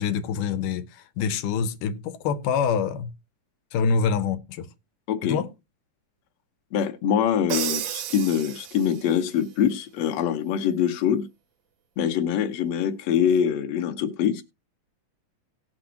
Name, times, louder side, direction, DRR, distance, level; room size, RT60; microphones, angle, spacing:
voice 1, 0.0-3.1 3.7-4.7 5.2-5.5, left 6 dB, 90° left, 2.4 m, -26 dB
voice 2, 5.1-5.4 6.7-11.3 12.0-14.4, left 8 dB, 65° left, 1.9 m, -24 dB
Crash cymbal, 7.5-9.2, right 11 dB, 75° right, 1.8 m, -32 dB
18.0 x 6.1 x 2.8 m
omnidirectional pair, 3.6 m